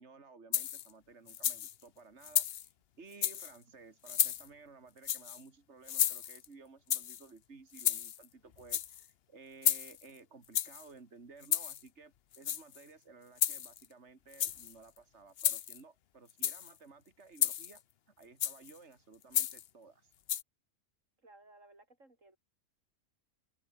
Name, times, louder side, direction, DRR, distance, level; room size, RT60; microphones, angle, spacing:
voice 1, 0.0-17.8 18.2-20.1, right 4 dB, 60° right, 2.7 m, -56 dB
sound 1, 0.5-0.9 1.3-1.7 2.2-2.7 3.1-3.5 4.1-4.5 5.0-5.4 5.9-6.5 6.9-7.2 7.7-8.3 8.6-9.0 9.6-10.0 10.5-10.8 11.4-11.8 12.3-12.8 13.4-13.9 14.3-14.7 15.4-15.8 16.3-16.7 17.4-17.8 18.4-18.7 19.3-19.7 20.3-20.4, left 10 dB, 55° left, 0.9 m, -32 dB
voice 2, 21.2-22.4, right 2 dB, 75° right, 5.7 m, -59 dB
omnidirectional pair, 1.3 m